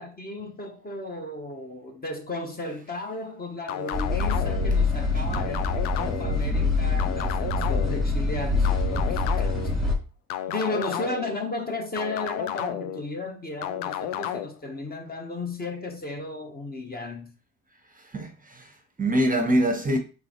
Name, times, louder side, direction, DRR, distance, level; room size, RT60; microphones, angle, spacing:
voice 1, 0.0-9.7 10.5-17.3, left 2 dB, 20° left, 0.9 m, -34 dB
sound 1, 3.7-4.7 5.3-6.4 7.0-8.0 8.6-9.7 10.3-11.4 12.0-13.0 13.6-14.5, left 11 dB, 70° left, 0.6 m, -32 dB
sound 2, 3.9-9.9, left 3 dB, ahead, 1.6 m, -25 dB
voice 2, 17.9-20.0, right 1 dB, 20° right, 0.8 m, -25 dB
3.9 x 3.2 x 2.9 m
hypercardioid pair, 60°, 43 cm